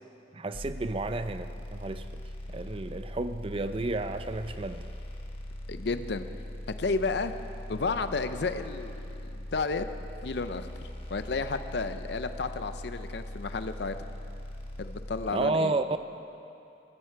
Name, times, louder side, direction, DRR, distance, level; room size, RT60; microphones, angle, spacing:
voice 1, 0.3-2.0 2.5-4.9 15.3-15.8, right 2 dB, 30° right, 10 dB, 0.5 m, -31 dB
sound 1, 0.5-15.3, left 1 dB, 30° left, 1.2 m, -41 dB
voice 2, 5.7-6.2 6.8-7.3 7.7-9.9 10.2-14.0 14.8-15.7, left 4 dB, 65° left, 10 dB, 0.5 m, -32 dB
15.5 x 15.0 x 4.6 m, 2.7 s
head